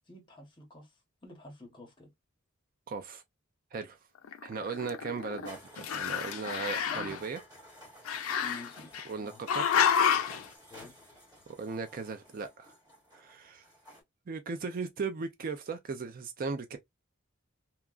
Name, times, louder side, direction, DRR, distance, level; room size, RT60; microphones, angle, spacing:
voice 1, 0.1-0.9 1.2-2.1 6.9-7.2 8.4-8.9 9.2-9.4 10.7-10.9, left 2 dB, 25° left, 1.0 m, -48 dB
voice 2, 2.9-3.2 3.7-4.0 4.4-7.4 9.0-9.8 11.6-12.7 13.1-13.7 14.3-16.8, right 4 dB, 45° right, 0.4 m, -37 dB
Growling, 4.2-5.5 5.8-7.2 8.1-9.1 9.5-10.4, left 7 dB, 85° left, 0.4 m, -29 dB
sound 1, 5.4-14.0, equal, 15° right, 1.7 m, -54 dB
2.8 x 2.3 x 2.3 m
head